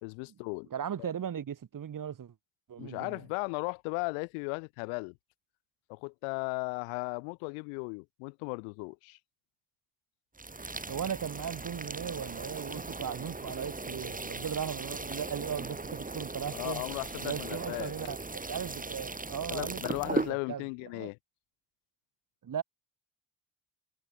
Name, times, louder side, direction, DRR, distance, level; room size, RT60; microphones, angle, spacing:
voice 1, 0.0-0.7 1.0-1.1 2.8-5.2 5.9-9.2 16.5-17.9 19.5-21.2, left 40 dB or more, 85° left, 1.8 m, -36 dB
voice 2, 0.7-2.3 2.7-3.2 10.9-16.8 17.2-20.6 20.9-21.1 22.4-22.6, right 8 dB, 45° right, 1.3 m, -37 dB
sound 1, 10.4-20.3, right 3 dB, 15° right, 2.1 m, -38 dB
hypercardioid pair, 45°, 46 cm